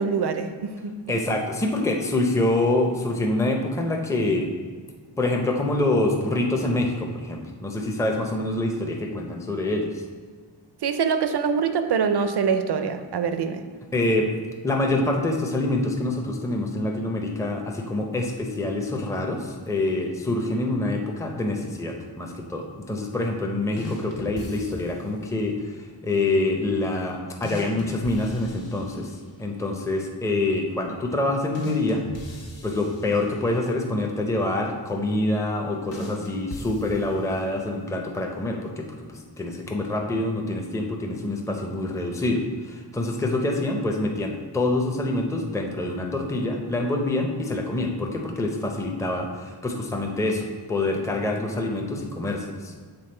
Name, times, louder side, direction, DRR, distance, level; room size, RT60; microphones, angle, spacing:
voice 1, 0.0-1.2 10.8-13.6, right 6 dB, 65° right, 8 dB, 0.5 m, -24 dB
voice 2, 1.1-4.5 5.2-9.9 13.9-14.3 14.6-25.6 26.0-29.1 29.4-32.0 32.6-52.7, left 2 dB, 5° left, 2 dB, 0.5 m, -26 dB
sound 1, 23.8-25.2 27.4-29.4 31.5-33.7 35.9-37.5, left 1 dB, 85° left, 1.1 m, -39 dB
6.9 x 3.5 x 4.3 m, 1.5 s
wide cardioid pair, 135°, 43 cm